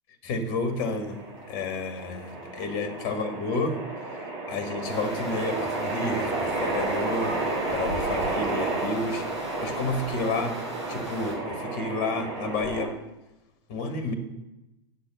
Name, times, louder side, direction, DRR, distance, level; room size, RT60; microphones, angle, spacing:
voice 1, 0.2-1.2 1.5-3.8 4.5-7.3 7.7-10.6 10.9-12.9 13.7-14.1, left 2 dB, 50° left, 8 dB, 1.9 m, -30 dB
sound 1, 0.7-12.9, right 2 dB, 45° right, 3.7 m, -32 dB
sound 2, 4.9-11.4, equal, 85° right, 3.1 m, -41 dB
9.4 x 6.6 x 7.5 m, 0.96 s
figure-of-eight pair, 95°, 15 cm